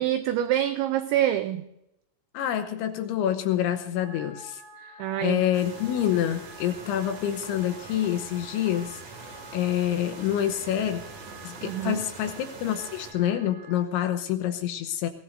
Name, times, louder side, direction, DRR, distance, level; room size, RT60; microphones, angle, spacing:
voice 1, 0.0-1.7 5.0-5.4 11.6-12.1, right 12 dB, 90° right, 10 dB, 2.6 m, -26 dB
voice 2, 2.3-4.9 5.2-9.0 9.5-11.0 11.4-15.1, left 11 dB, 75° left, 7 dB, 3.0 m, -27 dB
Wind instrument woodwind instrument, 3.9-13.8, right 2 dB, 60° right, 10.0 m, -49 dB
sound 1, 5.5-13.1, right 4 dB, 45° right, 2.3 m, -44 dB
23.0 x 16.5 x 2.6 m, 0.88 s
omnidirectional pair, 6.0 m